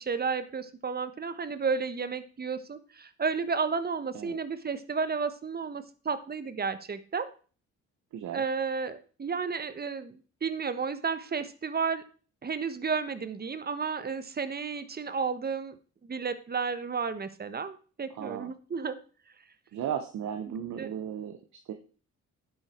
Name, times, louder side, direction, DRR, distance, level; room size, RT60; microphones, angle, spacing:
voice 1, 0.0-7.3 8.3-12.0 12.4-15.8 16.0-19.0 20.8-20.9, right 5 dB, 30° right, 12 dB, 1.3 m, -32 dB
voice 2, 8.1-8.4 18.1-18.5 19.7-21.7, right 9 dB, 70° right, 6 dB, 1.3 m, -36 dB
10.0 x 7.8 x 4.5 m, 0.38 s
cardioid pair, 90°, 30 cm